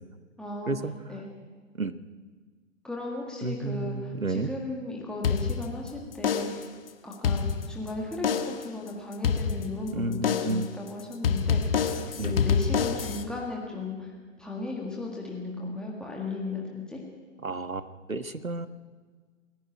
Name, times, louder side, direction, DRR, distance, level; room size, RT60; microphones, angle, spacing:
voice 1, 0.4-0.8 1.1-1.2 2.8-6.7 7.0-11.8 12.2-17.0, left 2 dB, ahead, -2 dB, 1.7 m, -36 dB
voice 2, 3.4-4.5 9.9-10.7 12.2-12.5 17.4-18.7, right 2 dB, 85° right, 12 dB, 1.4 m, -31 dB
sound 1, 5.2-5.9 6.2-6.7 7.1-7.9 8.2-8.7 9.2-9.9 10.2-10.7 11.2-13.2, left 6 dB, 45° left, 1.6 m, -27 dB
28.5 x 11.0 x 9.1 m, 1.5 s
figure-of-eight pair, 130°, 40 cm